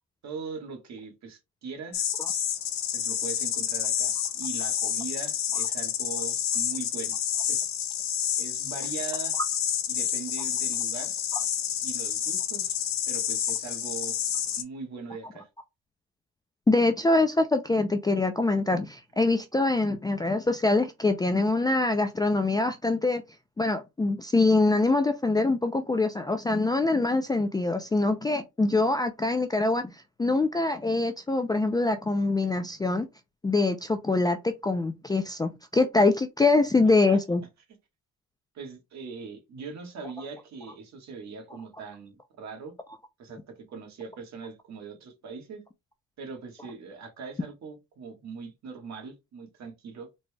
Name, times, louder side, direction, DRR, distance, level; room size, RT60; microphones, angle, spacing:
voice 1, 0.2-2.0 2.9-7.2 7.5-7.7 8.3-9.4 9.9-11.1 11.8-12.7 13.1-14.2 14.6-15.5 36.8-37.2 38.5-42.7 43.2-45.6 46.2-50.1, right 5 dB, 60° right, 1.5 m, -41 dB
sound 1, 1.9-14.6, left 10 dB, 60° left, 0.7 m, -29 dB
voice 2, 16.7-23.2 23.6-29.9 30.2-33.1 33.4-37.4, left 3 dB, 15° left, 0.4 m, -24 dB
4.1 x 3.0 x 2.2 m
cardioid pair, 100°, 31 cm